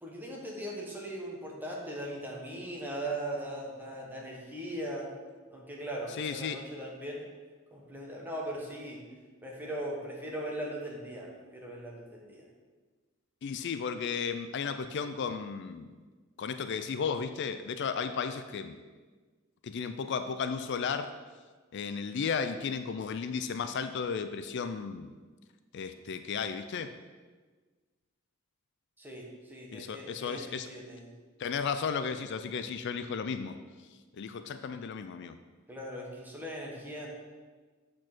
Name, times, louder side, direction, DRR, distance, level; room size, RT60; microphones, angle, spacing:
voice 1, 0.0-5.1 5.5-7.2 7.7-9.0 9.4-12.4 29.0-31.0 35.7-37.1, right 1 dB, 10° right, -2 dB, 1.5 m, -39 dB
voice 2, 6.2-6.6 13.4-15.9 16.4-18.8 19.6-21.1 21.7-25.1 25.7-26.9 29.7-30.7 31.4-33.6 34.2-35.4, left 6 dB, 55° left, 10 dB, 0.4 m, -34 dB
8.3 x 4.5 x 6.1 m, 1.4 s
head